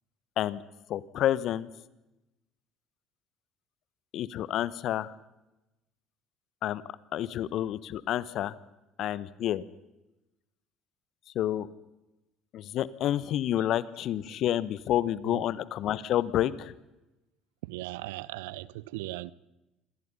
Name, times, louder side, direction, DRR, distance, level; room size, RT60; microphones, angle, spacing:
voice 1, 0.9-1.7 4.1-5.1 6.6-6.8 7.1-8.5 9.0-9.6 11.3-11.7 12.5-16.7, left 12 dB, 55° left, 1.2 m, -29 dB
voice 2, 17.6-19.3, right 18 dB, 75° right, 0.8 m, -38 dB
27.0 x 26.0 x 5.6 m
hypercardioid pair, 55°, 0 cm